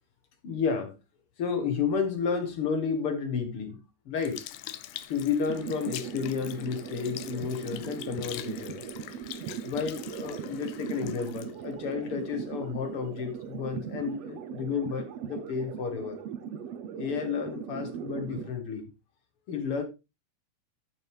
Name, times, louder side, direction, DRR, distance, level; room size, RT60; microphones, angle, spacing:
voice 1, 0.4-1.0 1.4-4.4 5.1-9.2 9.6-16.2 17.0-18.9 19.5-19.8, left 6 dB, 55° left, 1.8 m, -31 dB
Sink (filling or washing) / Liquid, 4.2-12.8 13.4-13.5, left 13 dB, 75° left, 2.0 m, -44 dB
sound 1, 5.5-18.5, right 8 dB, 85° right, 1.4 m, -39 dB
12.0 x 6.4 x 3.4 m
omnidirectional pair, 4.1 m